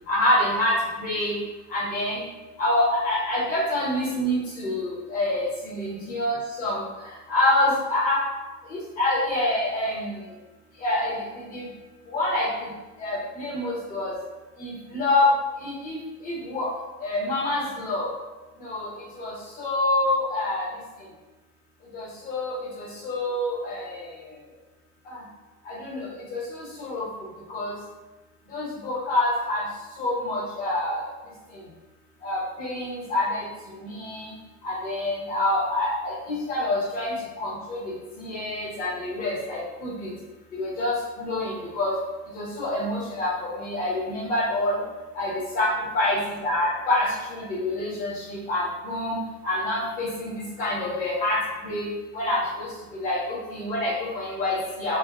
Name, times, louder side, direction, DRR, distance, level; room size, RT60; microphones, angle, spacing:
voice 1, 0.1-1.4 1.7-2.2 2.6-8.2 8.7-10.2 10.8-11.2 11.5-11.7 12.1-12.7 13.0-14.1 14.6-15.3 15.6-16.7 17.0-18.1 18.6-18.9 19.2-20.7 21.9-24.1 25.1-25.2 25.6-27.0 27.5-27.7 28.5-29.6 30.0-31.0 32.2-33.4 33.7-34.3 34.6-37.8 38.2-40.1 40.5-41.9 42.3-44.8 45.1-51.4 51.6-51.9 52.1-55.0, left 1 dB, 20° left, -8 dB, 0.7 m, -27 dB
3.3 x 2.0 x 2.2 m, 1.2 s
supercardioid pair, 160°, 47 cm